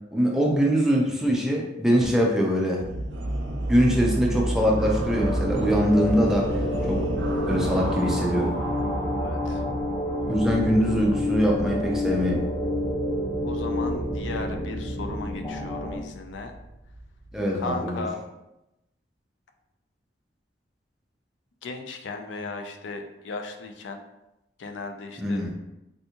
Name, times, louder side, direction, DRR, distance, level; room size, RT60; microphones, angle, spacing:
voice 1, 0.1-2.9 3.7-6.6 6.9-7.1 7.5-8.6 10.2-12.5 17.3-18.0 25.2-25.5, equal, 5° right, -2 dB, 0.4 m, -23 dB
sound 1, 2.8-17.7, right 1 dB, 75° right, 0.4 m, -33 dB
sound 2, 4.4-16.0, left 1 dB, 25° left, 0.9 m, -29 dB
voice 2, 9.2-9.6 13.4-16.5 17.5-18.2 21.6-24.0 24.6-25.4, left 3 dB, 85° left, 5 dB, 0.4 m, -36 dB
3.4 x 2.6 x 2.8 m, 0.92 s
head